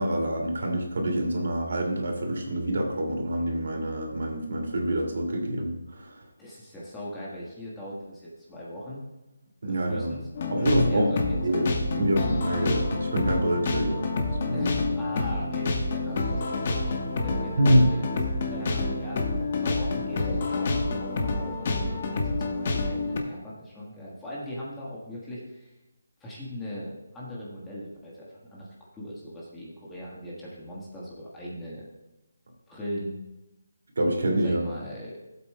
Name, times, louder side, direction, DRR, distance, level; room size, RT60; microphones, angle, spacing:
voice 1, 0.0-6.1 9.6-10.1 10.5-11.1 11.4-14.1 14.5-14.6 17.6-17.9 34.0-34.7, right 1 dB, 60° right, 1 dB, 2.3 m, -26 dB
voice 2, 6.4-9.0 9.9-10.3 10.5-11.8 14.5-16.9 17.2-18.2 18.4-19.2 19.5-25.7 26.2-31.8 32.7-33.1 34.4-35.2, equal, 5° left, -6 dB, 1.3 m, -39 dB
sound 1, 10.3-23.2, left 3 dB, 35° left, 1.1 m, -28 dB
15.0 x 8.2 x 2.2 m, 1.0 s
hypercardioid pair, 170°, 0 cm